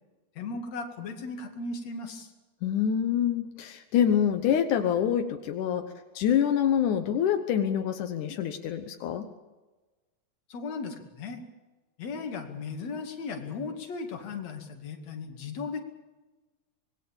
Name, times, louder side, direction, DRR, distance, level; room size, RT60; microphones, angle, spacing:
voice 1, 0.4-2.3 10.5-11.4 12.0-15.8, left 4 dB, 65° left, 4 dB, 3.4 m, -36 dB
voice 2, 2.6-9.3, left 9 dB, 85° left, 7 dB, 2.6 m, -26 dB
25.5 x 20.5 x 7.2 m, 1.2 s
omnidirectional pair, 3.4 m